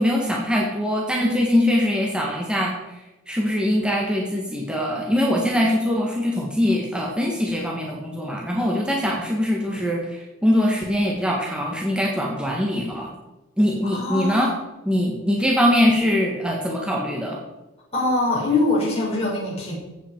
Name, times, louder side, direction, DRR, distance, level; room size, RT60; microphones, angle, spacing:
voice 1, 0.0-2.7 3.3-13.1 13.6-14.5 14.8-17.4, left 1 dB, 5° right, -1 dB, 1.5 m, -22 dB
voice 2, 13.9-14.5 17.9-19.7, left 2 dB, 30° left, -6 dB, 5.1 m, -23 dB
14.5 x 8.4 x 4.5 m, 1.0 s
head